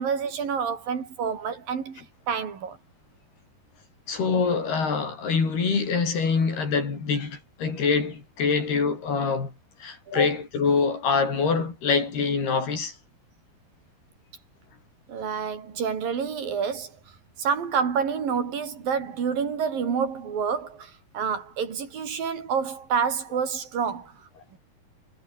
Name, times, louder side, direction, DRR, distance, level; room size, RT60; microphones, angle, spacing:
voice 1, 0.0-2.8 15.1-16.9 17.4-24.1 24.5-24.6, right 6 dB, 65° right, 5.2 m, -28 dB
voice 2, 4.1-9.5 9.8-13.0, left 5 dB, 80° left, 8.3 m, -25 dB
omnidirectional pair, 4.5 m